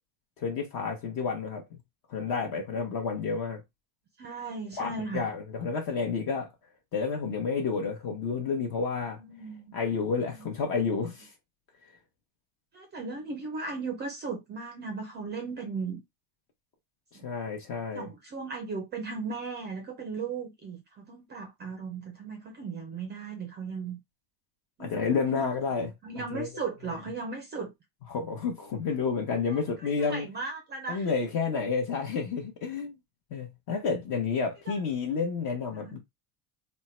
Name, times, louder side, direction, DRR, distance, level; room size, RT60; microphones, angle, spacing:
voice 1, 0.4-1.6 2.1-3.6 4.8-6.5 6.9-9.2 9.7-11.3 17.2-18.1 24.8-26.5 28.1-30.3 30.9-33.0 33.3-36.0, left 5 dB, 45° left, 0.9 m, -30 dB
voice 2, 4.2-5.3 9.2-9.7 10.2-10.5 10.8-10.9 12.7-16.0 17.1-17.3 17.9-24.0 24.8-25.6 26.0-27.7 29.5-31.1 34.7-34.8 35.7-36.0, right 4 dB, 25° right, 0.4 m, -37 dB
3.6 x 2.2 x 4.2 m
cardioid pair, 160°, 46 cm